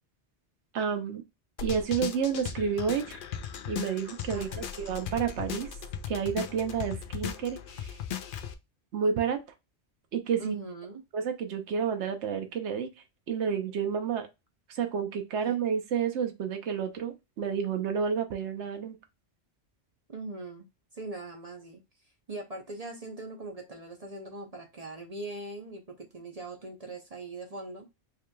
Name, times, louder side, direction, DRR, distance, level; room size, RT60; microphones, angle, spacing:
voice 1, 0.7-1.2 1.6-3.2 3.7-5.7 6.1-7.9 8.9-9.4 10.1-10.5 11.1-12.9 13.3-14.3 14.7-19.0, right 7 dB, 85° right, 1.1 m, -30 dB
sound 1, 1.6-8.5, left 8 dB, 60° left, 0.7 m, -37 dB
voice 2, 4.3-4.7 10.4-11.0 15.3-15.6 20.1-20.7 20.9-21.8 22.3-27.9, right 2 dB, 40° right, 0.7 m, -41 dB
4.7 x 3.1 x 2.2 m
omnidirectional pair, 1.1 m